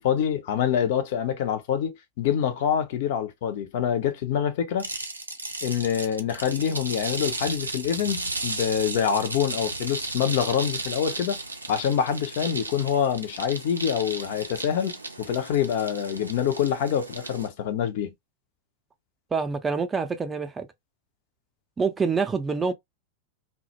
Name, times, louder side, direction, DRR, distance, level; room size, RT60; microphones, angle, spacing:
voice 1, 0.0-4.9 5.6-11.4 11.7-18.1, left 8 dB, 50° left, 0.5 m, -26 dB
sound 1, 4.8-17.5, right 2 dB, 80° right, 0.4 m, -35 dB
voice 2, 19.3-20.7 21.8-22.7, right 5 dB, 15° right, 0.4 m, -26 dB
2.1 x 2.0 x 2.8 m
figure-of-eight pair, 90°, 0 cm